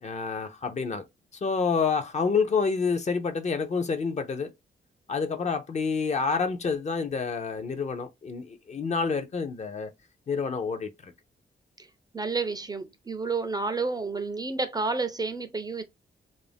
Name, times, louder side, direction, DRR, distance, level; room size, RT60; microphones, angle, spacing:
voice 1, 0.0-1.0 1.4-4.5 5.1-9.9 10.3-11.1, left 5 dB, 40° left, 0.5 m, -28 dB
voice 2, 12.1-15.8, right 3 dB, 20° right, 0.4 m, -30 dB
2.5 x 2.0 x 3.2 m
wide cardioid pair, 115°, 18 cm